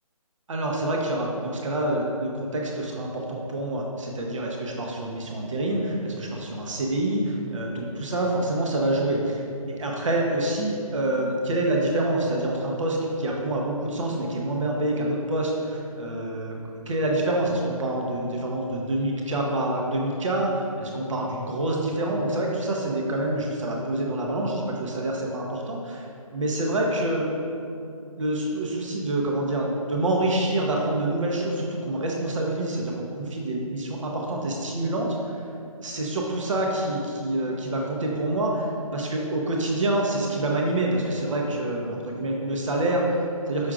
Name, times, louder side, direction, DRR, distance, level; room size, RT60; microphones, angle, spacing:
voice 1, 0.5-16.6 16.9-26.1 26.3-27.3 28.2-35.3 35.8-43.7, right 1 dB, 55° right, -1 dB, 0.9 m, -27 dB
6.3 x 6.2 x 2.4 m, 2.5 s
hypercardioid pair, 170°, 19 cm